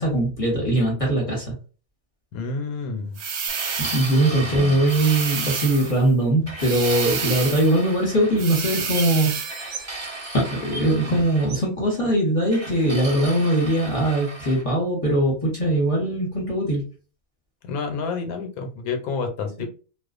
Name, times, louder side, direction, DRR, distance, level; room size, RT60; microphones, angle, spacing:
voice 1, 0.0-1.5 3.8-9.6 10.3-16.8 19.6-19.7, right 1 dB, 25° left, -4 dB, 1.0 m, -21 dB
voice 2, 2.3-3.2 4.4-4.8 17.6-19.6, left 4 dB, 85° left, 4 dB, 1.2 m, -29 dB
sound 1, 3.2-4.3 4.9-6.0 6.6-7.8 8.4-9.6, right 6 dB, 85° right, 1.1 m, -29 dB
sound 2, 3.5-6.0 6.5-8.4 9.5-11.5 12.5-14.6, right 2 dB, 25° right, 0.9 m, -36 dB
sound 3, 8.9-11.1 11.5-11.8 12.5-12.6, right 4 dB, 70° right, 0.5 m, -38 dB
2.4 x 2.4 x 2.4 m, 0.37 s
omnidirectional pair, 1.5 m